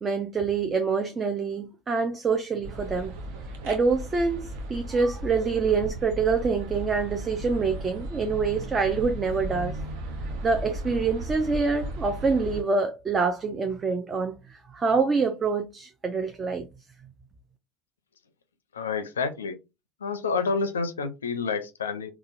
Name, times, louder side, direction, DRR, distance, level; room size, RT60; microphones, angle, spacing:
voice 1, 0.0-3.1 3.6-9.8 10.4-16.7, right 4 dB, 30° right, 0.5 m, -26 dB
sound 1, 2.6-12.6, right 1 dB, 70° right, 0.6 m, -36 dB
voice 2, 18.7-19.6 20.0-22.1, left 4 dB, 85° left, 0.4 m, -29 dB
3.7 x 2.3 x 2.4 m
hypercardioid pair, 70°, 0 cm